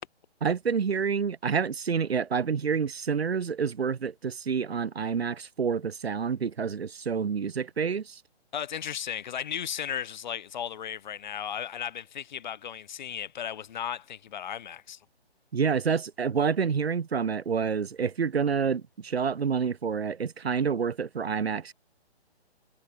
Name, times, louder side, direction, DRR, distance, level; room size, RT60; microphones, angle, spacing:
voice 1, 0.4-8.2 15.5-21.7, right 6 dB, 70° right, 1.9 m, -28 dB
voice 2, 8.5-15.0, left 9 dB, 45° left, 1.6 m, -35 dB
hypercardioid pair, 150°, 33 cm